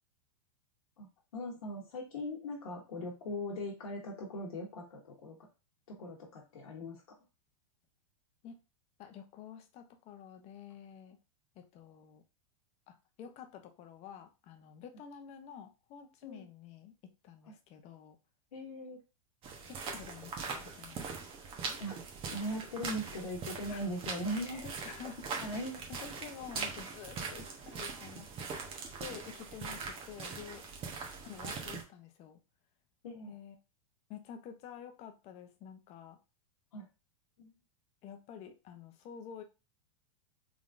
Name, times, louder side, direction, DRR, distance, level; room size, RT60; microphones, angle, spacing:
voice 1, 1.0-5.4 5.9-7.0 16.2-16.4 18.5-19.0 21.6-22.0 22.3-24.7 25.4-25.9 33.0-33.3 36.7-36.9 37.4-37.5, equal, 85° left, -3 dB, 1.2 m, -40 dB
voice 2, 9.0-11.2 11.5-12.2 12.9-16.9 17.2-18.2 19.7-21.3 23.7-23.8 24.5-25.6 25.9-28.5 29.0-30.7 31.2-32.4 33.3-33.6 34.1-36.2 38.0-39.4, left 8 dB, 35° left, 7 dB, 0.8 m, -49 dB
sound 1, 19.4-31.8, right 5 dB, 30° right, 1.1 m, -42 dB
3.7 x 3.6 x 2.5 m, 0.29 s
hypercardioid pair, 130°, 18 cm